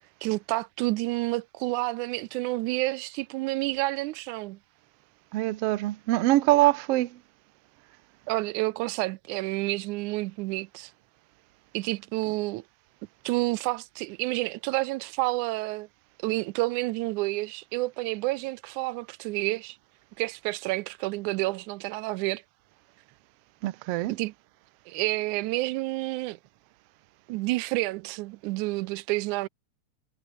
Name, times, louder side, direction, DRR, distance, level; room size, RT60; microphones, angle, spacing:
voice 1, 0.2-4.6 8.3-10.9 11.7-12.6 13.2-15.9 16.2-19.8 20.2-22.4 24.1-24.3 24.9-26.4 27.3-29.5, right 20 dB, 90° right, 2.0 m, -29 dB
voice 2, 5.3-7.1 23.6-24.2, right 17 dB, 70° right, 1.6 m, -23 dB
omnidirectional pair, 3.4 m